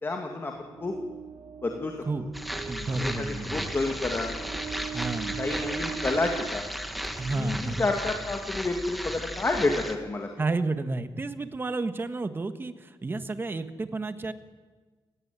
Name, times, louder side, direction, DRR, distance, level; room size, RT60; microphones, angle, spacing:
voice 1, 0.0-1.0 1.6-1.9 2.9-4.3 5.4-6.6 7.4-10.3, left 2 dB, 25° left, 3 dB, 2.3 m, -29 dB
sound 1, 0.5-7.5, right 7 dB, 85° right, 2.7 m, -41 dB
sound 2, 2.3-10.0, equal, ahead, 1.6 m, -35 dB
voice 2, 2.7-3.7 4.9-5.4 7.2-7.9 10.4-14.3, right 3 dB, 25° right, 9 dB, 1.5 m, -31 dB
29.5 x 16.5 x 9.7 m, 1.4 s
wide cardioid pair, 165°, 9 cm